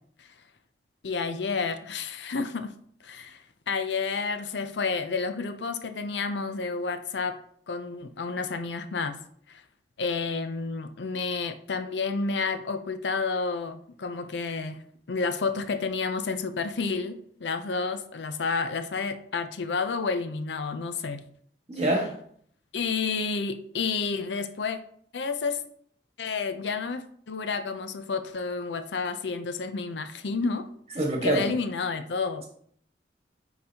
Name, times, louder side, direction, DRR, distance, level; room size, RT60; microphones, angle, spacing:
voice 1, 1.0-2.7 3.0-7.4 7.7-9.2 9.5-9.6 10.0-14.8 15.1-21.2 22.7-24.8 25.1-25.6 26.2-30.7 31.2-32.4, left 4 dB, 80° left, 9 dB, 0.6 m, -30 dB
voice 2, 21.7-22.1 30.9-31.5, right 1 dB, 35° right, 0 dB, 1.6 m, -25 dB
9.3 x 4.0 x 2.8 m, 0.63 s
head